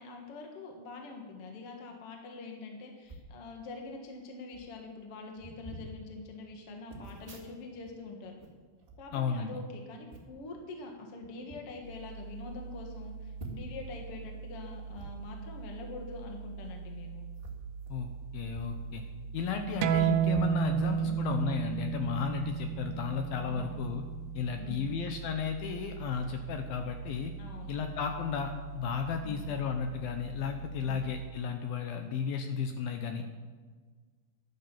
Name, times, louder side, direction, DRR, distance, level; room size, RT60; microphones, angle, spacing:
voice 1, 0.0-8.4 9.0-17.3 21.0-21.3 23.5-23.8 24.6-25.0 27.4-27.7 29.2-29.5, left 3 dB, 50° left, 1 dB, 1.9 m, -45 dB
sound 1, 3.0-3.3 4.2-4.3 4.5-4.8 5.3-5.9 6.9-7.9 8.2-9.6 10.1-10.4 11.2-11.6 12.1-12.2 12.5-12.6 13.3-13.8 14.9-15.1 16.5-16.7 17.3-18.8 19.1-19.2 19.9-21.1 21.6-21.8, right 3 dB, 35° right, 0.8 m, -48 dB
voice 2, 9.1-9.6 17.9-19.0 19.3-24.0 24.3-27.3 27.7-33.4, left 6 dB, 75° left, 5 dB, 2.4 m, -34 dB
sound 2, 11.8-31.3, right 5 dB, 50° right, 2.2 m, -44 dB
sound 3, 19.8-25.0, right 9 dB, 80° right, 2.2 m, -31 dB
11.5 x 11.0 x 7.3 m, 1.4 s
omnidirectional pair, 4.9 m